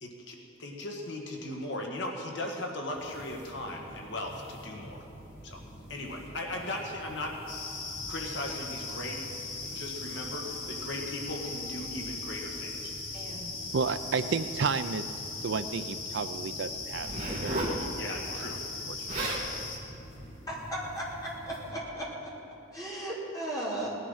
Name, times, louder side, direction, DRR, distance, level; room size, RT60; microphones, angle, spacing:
voice 1, 0.0-5.1 5.4-5.6 5.9-7.4 8.1-9.2 9.6-12.9 18.0-18.7, left 1 dB, 60° left, 0 dB, 1.7 m, -38 dB
sound 1, 3.0-21.7, equal, 45° left, 4.1 m, -48 dB
sound 2, 7.5-19.8, left 3 dB, 80° left, 2.5 m, -39 dB
voice 2, 13.7-15.1 15.4-17.1 17.4-17.8 18.3-18.4 18.9-19.3, right 5 dB, 60° right, 12 dB, 0.5 m, -32 dB
Zipper (clothing), 16.9-17.8 18.8-18.9 19.1-19.5 20.2-20.4, right 1 dB, 35° right, 2.3 m, -33 dB
voice 3, 20.5-22.1 22.7-24.0, right 1 dB, 20° left, -6 dB, 3.5 m, -36 dB
18.5 x 11.0 x 5.6 m, 2.9 s
head